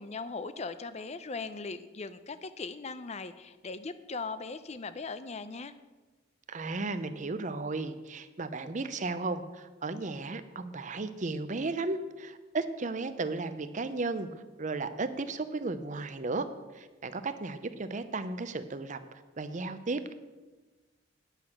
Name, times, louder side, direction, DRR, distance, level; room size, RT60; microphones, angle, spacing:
voice 1, 0.0-5.7, left 4 dB, 35° left, 12 dB, 0.6 m, -39 dB
voice 2, 6.5-14.3 14.6-16.5 16.7-19.0 19.4-20.1, right 3 dB, 40° right, 11 dB, 0.7 m, -34 dB
9.8 x 8.1 x 5.9 m, 1.2 s
head